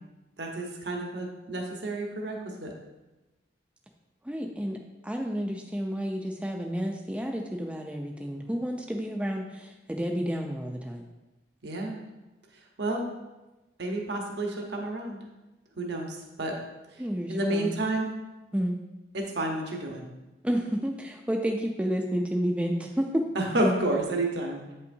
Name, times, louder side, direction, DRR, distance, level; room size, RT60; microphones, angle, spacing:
voice 1, 0.4-2.7 11.6-12.0 12.8-13.0 13.8-15.2 15.8-16.5 17.3-18.1 19.1-20.1 23.3-24.6, right 1 dB, 70° right, 1 dB, 1.0 m, -30 dB
voice 2, 4.2-4.8 5.0-11.0 17.0-17.7 18.5-18.8 20.4-23.2, equal, 5° right, 2 dB, 0.4 m, -30 dB
8.3 x 5.6 x 2.7 m, 1.1 s
head